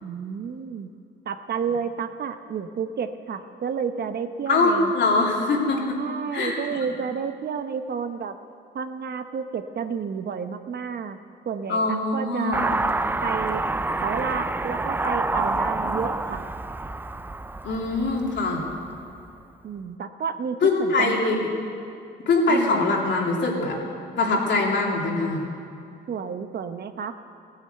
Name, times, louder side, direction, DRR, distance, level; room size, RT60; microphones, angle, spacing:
voice 1, 0.0-0.9 1.3-4.9 6.0-8.4 8.7-11.2 11.5-12.8 13.2-13.6 14.0-16.4 19.6-21.4 22.5-22.9 26.1-27.1, right 6 dB, 55° right, 9 dB, 0.9 m, -31 dB
voice 2, 4.5-6.0 6.3-6.6 11.7-12.7 17.6-18.6 20.6-21.5 22.3-23.8 24.2-25.4, left 3 dB, 65° left, -1 dB, 2.9 m, -23 dB
Car passing by / Accelerating revving vroom, 12.5-19.1, right 2 dB, 10° right, 0.4 m, -28 dB
16.5 x 9.2 x 8.0 m, 2.5 s
cardioid pair, 90°, 20 cm